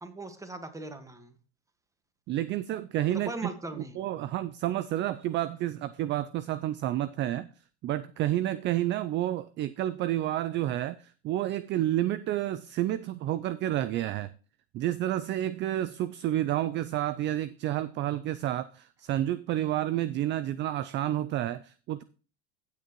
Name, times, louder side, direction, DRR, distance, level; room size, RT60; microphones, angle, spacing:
voice 1, 0.0-1.4 3.1-4.1, right 2 dB, 10° right, 1.6 m, -39 dB
voice 2, 2.3-3.5 4.0-7.5 7.8-14.3 14.7-22.0, right 13 dB, 35° right, 0.4 m, -30 dB
15.0 x 6.7 x 3.0 m
hypercardioid pair, 90°, 33 cm